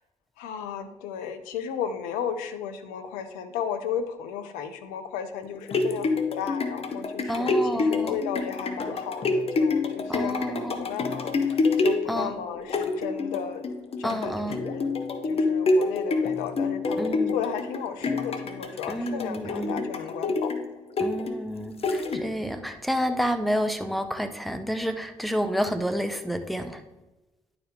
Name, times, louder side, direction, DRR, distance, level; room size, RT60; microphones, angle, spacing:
voice 1, 0.4-13.7 14.0-14.9 15.2-20.5, left 7 dB, 80° left, 9 dB, 0.7 m, -34 dB
sound 1, 5.4-22.6 23.1-23.2, left 3 dB, 45° left, 1.0 m, -27 dB
voice 2, 7.3-8.2 10.1-10.9 12.1-12.3 14.0-14.6 17.0-17.4 18.9-19.9 21.0-26.8, equal, ahead, 8 dB, 1.0 m, -29 dB
10.5 x 4.8 x 3.6 m, 1.0 s
hypercardioid pair, 45°, 14 cm